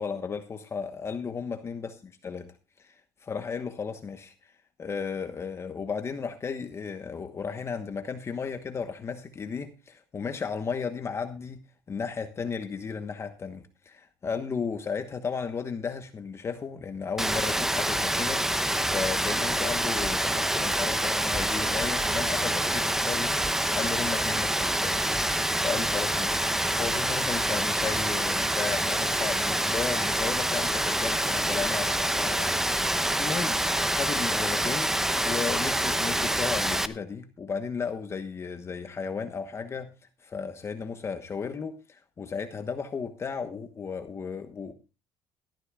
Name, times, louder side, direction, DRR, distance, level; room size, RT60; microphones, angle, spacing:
voice 1, 0.0-2.5 2.8-4.5 4.8-11.6 11.9-32.5 32.8-34.9 35.2-39.9 40.2-44.7, left 5 dB, 30° left, 1.1 m, -34 dB
Rain, 17.2-36.9, right 1 dB, 5° right, 0.8 m, -26 dB
19.0 x 13.5 x 2.4 m
cardioid pair, 120°, 9 cm